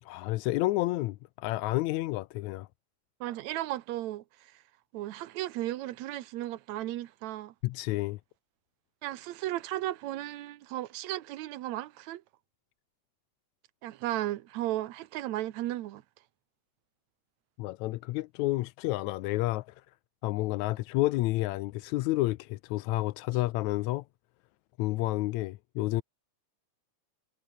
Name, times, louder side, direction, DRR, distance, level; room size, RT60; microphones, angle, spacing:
voice 1, 0.0-2.7 7.6-8.2 17.6-19.8 20.2-24.0 24.8-26.0, left 18 dB, 80° left, 2.0 m, -30 dB
voice 2, 3.2-4.6 4.9-7.5 9.0-12.2 13.8-16.0, right 14 dB, 75° right, 2.2 m, -35 dB
omnidirectional pair, 3.3 m